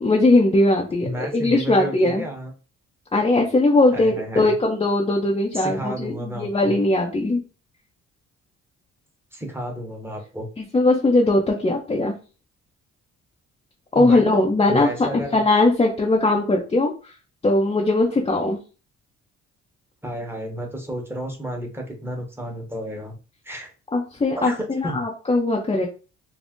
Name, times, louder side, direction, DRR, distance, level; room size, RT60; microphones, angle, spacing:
voice 1, 0.0-2.2 3.1-7.4 10.6-12.1 13.9-17.1 17.4-18.6 23.9-25.9, left 2 dB, 20° left, -1 dB, 0.5 m, -20 dB
voice 2, 1.0-2.5 3.9-4.5 5.5-6.8 9.3-10.5 13.9-14.2 14.7-15.4 20.0-23.2 23.4-23.7 24.4-25.0, right 1 dB, 10° right, 1 dB, 0.9 m, -31 dB
2.6 x 2.0 x 3.5 m, 0.33 s
cardioid pair, 90°, 30 cm